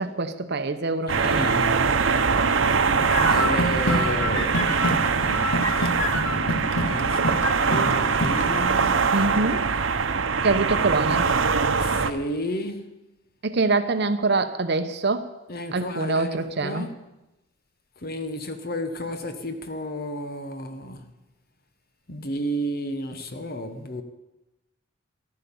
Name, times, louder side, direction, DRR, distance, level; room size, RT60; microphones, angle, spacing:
voice 1, 0.0-1.4 9.1-9.7 10.4-11.3 13.4-15.2 15.7-16.9, right 3 dB, 60° right, 0.9 m, -24 dB
voice 2, 1.1-1.8 3.3-5.0 6.8-7.4 7.6-9.1 11.8-12.9 15.5-16.4 16.6-17.0 18.0-21.1 22.1-24.0, equal, 50° left, 1.2 m, -32 dB
sound 1, 1.1-12.1, right 5 dB, 85° right, 0.9 m, -23 dB
sound 2, 3.0-8.6, left 1 dB, 80° left, 1.6 m, -27 dB
14.0 x 11.5 x 7.0 m
head